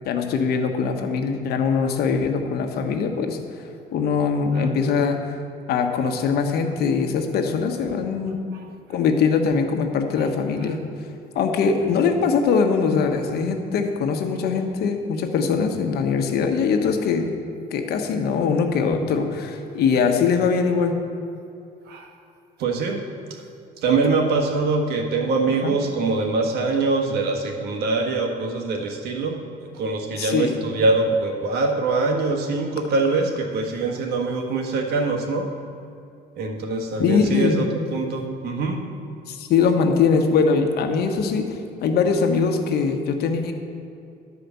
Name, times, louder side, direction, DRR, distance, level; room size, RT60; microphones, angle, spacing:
voice 1, 0.0-3.4 3.9-5.4 5.7-8.4 8.9-10.8 11.3-17.3 17.7-21.0 25.6-25.7 30.2-30.7 37.0-37.6 39.3-43.5, left 5 dB, 70° left, 5 dB, 1.2 m, -22 dB
voice 2, 22.6-23.0 23.3-23.4 23.8-35.5 36.4-38.9, right 3 dB, 75° right, 2 dB, 1.5 m, -24 dB
11.5 x 5.0 x 8.2 m, 2.6 s
cardioid pair, 110°, 17 cm